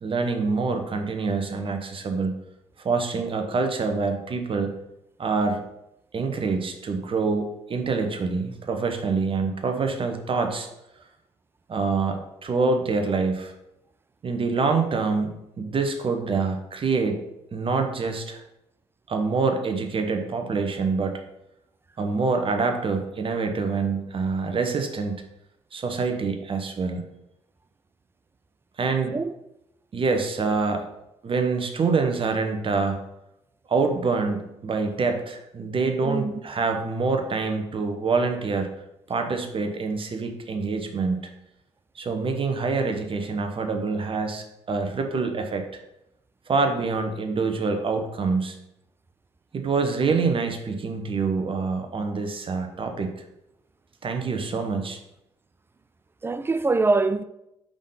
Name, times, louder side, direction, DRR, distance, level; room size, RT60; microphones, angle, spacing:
voice 1, 0.0-2.3 2.8-4.8 5.2-5.7 6.1-10.7 11.7-13.5 14.2-18.4 19.1-21.2 22.0-25.2 25.7-27.0 28.8-29.2 29.9-30.9 31.2-33.0 33.7-38.7 39.1-41.3 41.9-45.8 46.5-48.6 49.5-53.1 54.0-55.0, right 4 dB, 35° right, 0.9 m, -26 dB
voice 2, 36.0-36.4 56.2-57.2, right 3 dB, 15° right, 0.4 m, -24 dB
5.1 x 3.8 x 5.4 m
hypercardioid pair, 50°, 15 cm